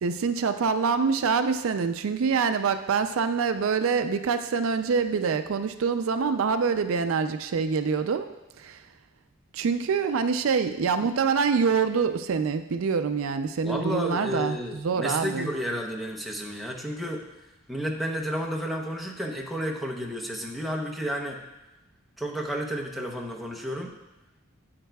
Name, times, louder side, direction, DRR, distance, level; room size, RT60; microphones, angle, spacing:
voice 1, 0.0-8.3 8.6-8.8 9.5-15.5, right 5 dB, 70° right, 9 dB, 0.4 m, -25 dB
voice 2, 13.6-17.2 17.7-21.4 22.2-23.9, equal, ahead, -1 dB, 0.8 m, -31 dB
9.2 x 8.8 x 2.3 m, 0.99 s
head